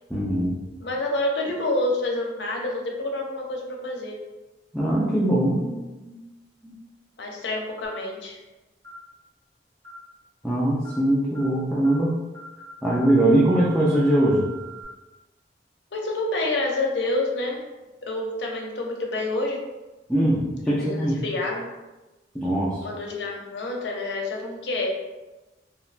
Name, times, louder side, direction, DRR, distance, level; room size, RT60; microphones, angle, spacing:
voice 1, 0.1-0.6 4.7-5.7 6.0-6.2 6.6-6.7 10.4-12.2 12.8-14.5 20.1-21.2 22.3-22.8, right 1 dB, ahead, -8 dB, 0.3 m, -21 dB
voice 2, 0.8-4.2 7.2-8.4 15.9-17.6 18.0-19.6 20.8-21.7 22.8-25.0, left 2 dB, 70° left, 1 dB, 0.5 m, -28 dB
sound 1, 7.8-8.1 8.8-9.1 9.8-10.1 10.8-11.1 11.3-11.6 11.8-12.1 12.3-14.8, right 3 dB, 80° right, 1.4 m, -43 dB
2.8 x 2.2 x 2.4 m, 1.1 s
head